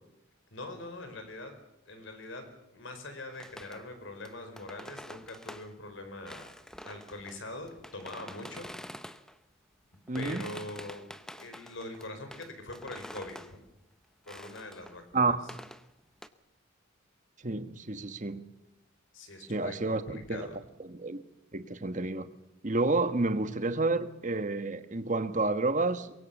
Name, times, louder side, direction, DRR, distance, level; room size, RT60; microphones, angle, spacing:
voice 1, 0.5-1.6 1.9-6.5 6.8-8.7 10.1-11.0 11.4-13.4 14.2-15.3 19.1-20.6, left 2 dB, 60° left, 7 dB, 4.8 m, -43 dB
sound 1, 3.3-5.7 6.3-9.4 9.9-13.6 14.3-15.1 15.5-16.3, equal, 5° left, 0.8 m, -47 dB
voice 2, 10.1-10.5 15.1-15.4 17.4-18.4 19.5-20.5 20.8-21.2 21.5-22.3 22.6-26.1, right 3 dB, 35° right, 11 dB, 1.2 m, -30 dB
24.0 x 22.5 x 7.3 m, 0.89 s
head